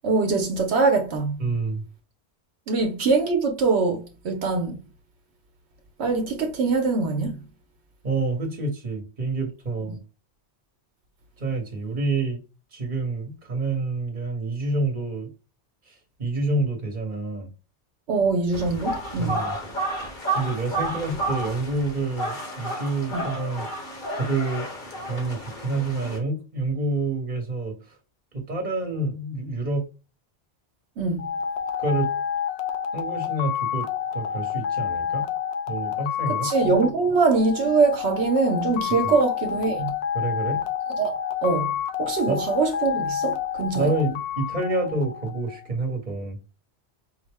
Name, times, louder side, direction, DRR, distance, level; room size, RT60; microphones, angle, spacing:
voice 1, 0.0-1.5 2.7-4.8 6.0-7.4 18.1-19.4 23.1-23.2 31.0-31.3 36.3-39.9 41.0-41.1 41.4-41.7 42.0-43.9, right 4 dB, 80° right, 1.0 m, -23 dB
voice 2, 1.4-1.8 8.0-10.0 11.4-12.4 12.7-15.3 16.2-17.5 19.2-19.6 20.3-23.7 24.1-24.7 25.0-27.8 28.3-29.8 31.8-32.1 32.9-33.9 34.1-35.2 35.7-36.5 39.0-39.1 40.1-40.6 42.3-42.4 43.7-46.4, right 2 dB, 45° right, 1.2 m, -28 dB
sound 1, 18.5-26.2, right 1 dB, 50° left, 1.2 m, -31 dB
sound 2, 31.2-45.6, left 8 dB, 80° left, 0.9 m, -29 dB
5.3 x 2.1 x 3.4 m
omnidirectional pair, 1.1 m